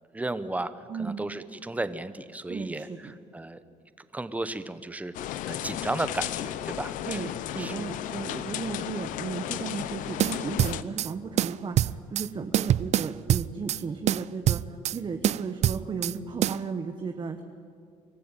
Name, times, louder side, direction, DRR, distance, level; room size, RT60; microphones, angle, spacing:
voice 1, 0.1-0.7 1.0-3.6 4.0-7.3 7.6-7.9 8.7-8.9, right 2 dB, 10° right, 13 dB, 1.0 m, -34 dB
voice 2, 0.9-1.3 2.5-3.1 7.0-17.4, right 5 dB, 35° right, 6 dB, 1.2 m, -35 dB
sound 1, 5.1-10.8, left 12 dB, 85° left, 0.8 m, -34 dB
sound 2, 10.2-11.1 11.4-12.3 12.5-13.8 14.1-15.0 15.2-16.1 16.4-16.6, right 12 dB, 60° right, 0.4 m, -25 dB
24.5 x 14.5 x 9.1 m, 2.2 s
cardioid pair, 100°, 13 cm